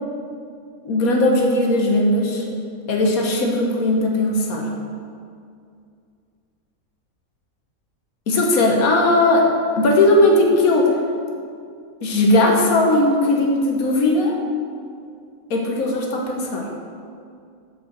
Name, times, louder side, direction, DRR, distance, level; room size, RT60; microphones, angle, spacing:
voice 1, 0.8-2.4 2.9-4.7 8.3-9.5 9.8-10.9 12.0-14.3 15.5-16.6, left 2 dB, 80° left, 0 dB, 1.6 m, -18 dB
7.0 x 6.5 x 6.7 m, 2.3 s
omnidirectional pair, 1.5 m